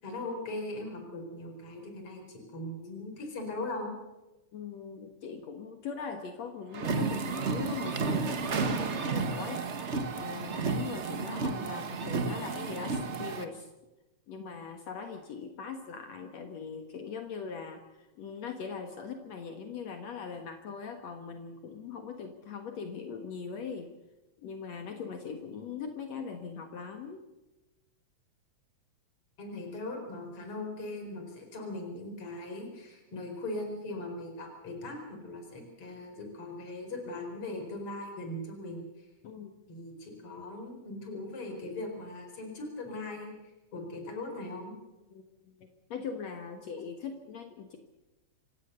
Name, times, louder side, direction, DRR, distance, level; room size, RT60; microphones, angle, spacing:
voice 1, 0.0-3.9 29.4-38.9 39.7-43.3 43.7-44.7, left 2 dB, 50° left, 4 dB, 5.4 m, -39 dB
voice 2, 4.5-13.7 14.3-23.9 24.4-27.2 39.2-39.5 45.1-47.8, left 6 dB, 65° left, 5 dB, 2.7 m, -41 dB
sound 1, 6.7-13.4, right 4 dB, 70° right, 0.6 m, -32 dB
27.0 x 17.0 x 6.8 m, 1.0 s
omnidirectional pair, 3.3 m